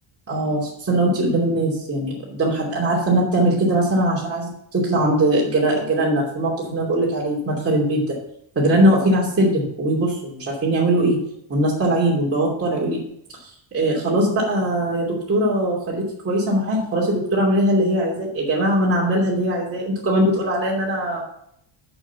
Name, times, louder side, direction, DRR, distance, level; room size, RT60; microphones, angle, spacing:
voice 1, 0.3-8.1 8.5-11.2 11.5-13.0 13.7-21.2, right 1 dB, 30° right, -6 dB, 2.8 m, -20 dB
6.4 x 6.1 x 7.1 m, 0.74 s
cardioid pair, 100°, 49 cm